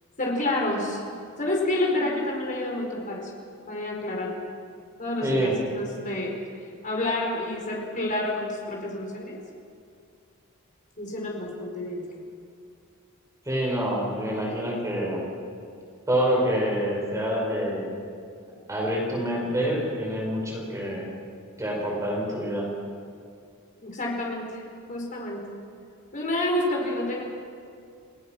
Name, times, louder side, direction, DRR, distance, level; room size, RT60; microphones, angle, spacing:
voice 1, 0.2-1.1 1.4-3.3 3.7-4.4 5.0-6.4 6.8-9.4 11.0-12.0 23.8-24.6 24.9-25.4 26.1-27.2, left 1 dB, 40° left, -1 dB, 4.6 m, -29 dB
voice 2, 5.2-5.5 13.5-15.3 16.1-17.9 18.7-21.1 21.6-22.7, equal, 15° right, -2 dB, 5.4 m, -26 dB
29.0 x 18.0 x 6.1 m, 2.4 s
head